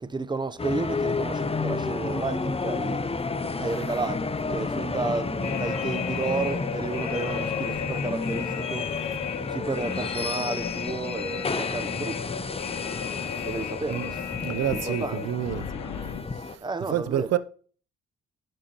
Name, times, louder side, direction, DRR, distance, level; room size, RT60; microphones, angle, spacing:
voice 1, 0.0-3.2 3.6-8.9 9.5-12.2 13.4-14.2 14.7-15.2 16.6-17.3, right 3 dB, 15° right, 0.6 m, -32 dB
sound 1, 0.6-16.6, left 4 dB, 20° left, 0.7 m, -31 dB
sound 2, 5.4-16.2, left 10 dB, 65° left, 0.9 m, -35 dB
voice 2, 14.4-15.7 16.5-16.6 16.9-17.4, right 11 dB, 55° right, 0.6 m, -28 dB
10.0 x 5.5 x 2.9 m
hypercardioid pair, 50°, 32 cm